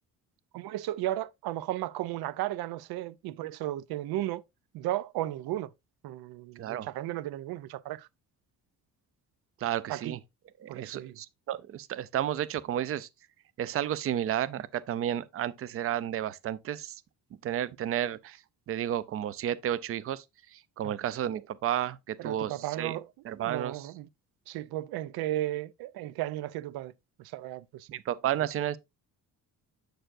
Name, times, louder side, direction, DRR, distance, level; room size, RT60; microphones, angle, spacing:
voice 1, 0.5-4.4 4.7-5.7 6.0-8.1 9.9-10.2 10.7-11.2 20.8-20.9 22.2-23.1 23.4-24.1 24.5-26.9 27.2-28.0, right 14 dB, 90° right, 0.5 m, -34 dB
voice 2, 9.6-10.2 10.6-13.1 13.6-17.0 17.4-18.4 18.7-20.2 20.5-23.0 23.2-23.9 27.9-28.8, right 11 dB, 40° right, 0.4 m, -32 dB
7.6 x 6.7 x 2.5 m
cardioid pair, 160°, 37 cm